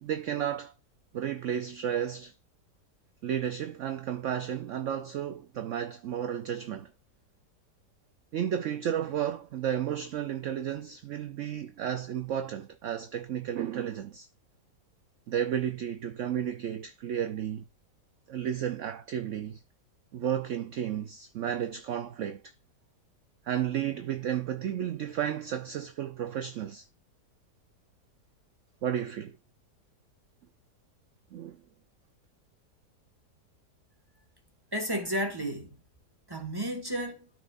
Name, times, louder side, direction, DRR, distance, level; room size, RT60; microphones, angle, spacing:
voice 1, 0.0-0.7 1.1-2.3 3.2-6.9 8.3-14.3 15.3-17.6 18.3-19.6 20.1-22.4 23.5-26.9 28.8-29.4 31.3-31.6, right 9 dB, 60° right, 0.8 m, -32 dB
voice 2, 34.7-35.8 36.3-37.3, equal, 15° right, 1.7 m, -32 dB
13.5 x 4.8 x 2.5 m
omnidirectional pair, 1.8 m